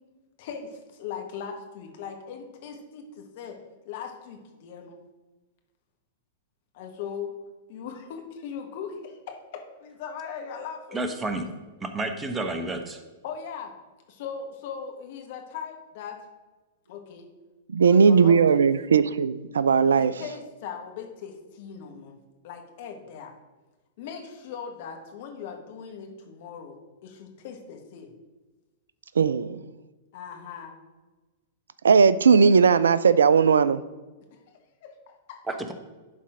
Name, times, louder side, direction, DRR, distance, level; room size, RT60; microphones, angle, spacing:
voice 1, 0.4-3.6 3.8-5.0 6.7-7.3 7.7-11.0 13.2-13.7 14.1-16.2 16.9-17.3 17.7-18.4 18.7-19.0 19.9-22.1 22.4-23.3 24.0-26.8 27.0-28.1 30.1-30.7 34.3-34.4 34.8-35.4, left 7 dB, 55° left, 3 dB, 1.6 m, -39 dB
voice 2, 10.9-11.5 11.8-13.0 35.5-35.7, right 2 dB, 15° right, 7 dB, 1.0 m, -30 dB
voice 3, 17.7-20.1 29.2-29.6 31.8-33.8, right 6 dB, 75° right, 17 dB, 0.3 m, -18 dB
11.0 x 4.2 x 4.9 m, 1.2 s
figure-of-eight pair, 100°, 0 cm